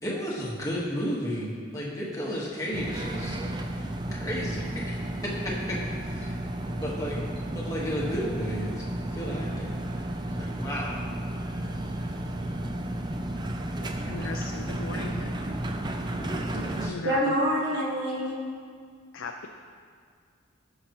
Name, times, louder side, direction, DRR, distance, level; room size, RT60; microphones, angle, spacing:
voice 1, 0.0-3.4 4.1-5.0 5.2-5.8 6.0-6.4 6.6-8.8 9.1-9.7 10.3-11.0 16.2-16.9, equal, 15° left, -5 dB, 1.4 m, -33 dB
sound 1, 2.7-16.9, right 1 dB, 20° right, 0.4 m, -33 dB
voice 2, 13.8-15.5 16.6-17.4 19.1-19.5, left 4 dB, 65° left, 3 dB, 0.4 m, -38 dB
voice 3, 17.0-18.4, equal, 50° right, -4 dB, 1.6 m, -26 dB
15.0 x 5.7 x 3.0 m, 2.1 s
head